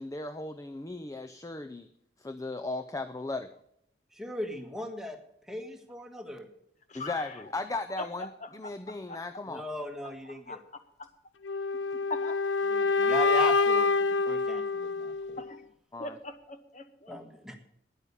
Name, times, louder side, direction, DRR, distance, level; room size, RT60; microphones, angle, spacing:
voice 1, 0.0-1.9 2.2-3.5 6.9-9.6 15.9-16.1, left 2 dB, 20° left, 8 dB, 0.5 m, -36 dB
voice 2, 4.1-5.2 5.5-6.5 9.5-10.6 12.7-13.9 14.2-15.4 17.1-17.5, equal, 5° right, 4 dB, 1.5 m, -38 dB
voice 3, 6.9-7.6 8.0-9.2 9.6-9.7 10.2-10.6 12.1-12.4 13.0-13.1 15.4-15.7 16.0-17.2, left 2 dB, 40° left, 9 dB, 1.0 m, -41 dB
sound 1, 11.4-15.5, left 4 dB, 85° left, 0.5 m, -26 dB
10.0 x 8.8 x 8.4 m, 0.72 s
head